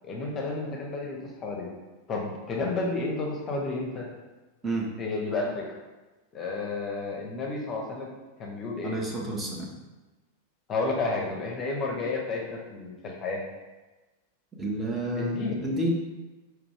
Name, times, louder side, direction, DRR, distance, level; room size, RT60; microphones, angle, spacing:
voice 1, 0.0-1.7 2.1-4.1 5.0-5.7 6.3-8.1 8.4-8.9 10.7-13.4 15.2-15.6, left 3 dB, 30° left, -1 dB, 0.7 m, -31 dB
voice 2, 8.8-9.8 14.6-16.1, right 1 dB, 10° right, -3 dB, 0.8 m, -30 dB
4.7 x 2.6 x 3.3 m, 1.2 s
figure-of-eight pair, 90°, 0 cm